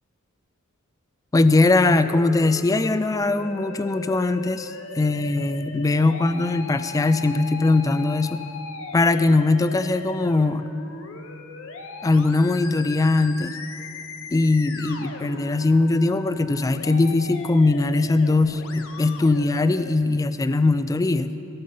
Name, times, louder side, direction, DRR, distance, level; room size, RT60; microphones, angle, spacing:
voice 1, 1.3-8.4 8.9-10.7 12.0-13.5 14.3-21.3, left 2 dB, 15° left, 12 dB, 0.3 m, -20 dB
Musical instrument, 2.0-19.9, left 4 dB, 65° left, 0.9 m, -39 dB
17.0 x 6.8 x 5.4 m, 2.9 s
head